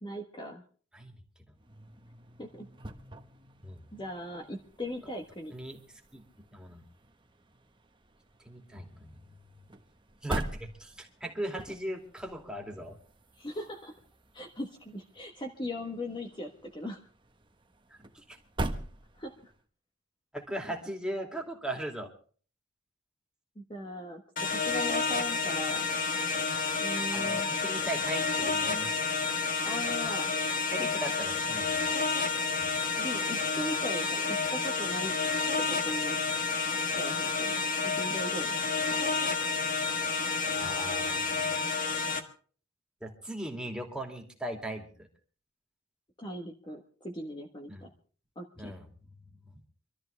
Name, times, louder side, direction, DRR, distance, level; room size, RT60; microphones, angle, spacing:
voice 1, 0.0-0.6 2.4-2.7 3.9-5.5 13.4-13.9 14.3-17.0 19.2-19.5 23.5-25.8 26.8-27.5 29.6-30.3 30.8-30.9 31.1-31.2 33.0-35.1 35.6-36.2 37.0-37.5 38.0-38.5 38.9-39.1 46.2-47.9 48.3-48.7, left 1 dB, 25° left, 2 dB, 1.4 m, -39 dB
sound 1, 1.5-19.6, right 1 dB, 25° right, 1.3 m, -44 dB
voice 2, 6.5-6.8 8.5-9.2 10.2-13.0 18.1-18.4 20.3-22.1 27.1-28.9 30.7-31.8 32.6-32.7 40.6-41.3 43.0-45.1 47.7-47.9 48.6-48.9, right 1 dB, 5° right, 1 dB, 2.6 m, -38 dB
sound 2, 24.4-42.2, left 4 dB, 40° left, 1.6 m, -30 dB
25.5 x 13.5 x 3.4 m, 0.43 s
head